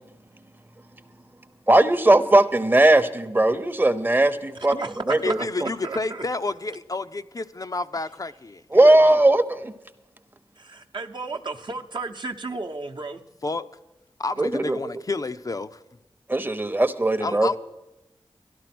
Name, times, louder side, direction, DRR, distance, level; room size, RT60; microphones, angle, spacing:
voice 1, 1.7-4.8 5.1-5.7 8.7-9.7 14.4-14.8 16.3-17.5, right 1 dB, 20° right, 0.8 m, -18 dB
voice 2, 4.7-5.4 5.8-6.2 10.6-13.2, right 3 dB, 50° right, 0.8 m, -33 dB
voice 3, 5.2-9.3 13.4-13.6 14.2-15.8 17.2-17.6, left 3 dB, 35° left, 0.5 m, -30 dB
12.5 x 11.5 x 6.0 m
cardioid pair, 55°, 10 cm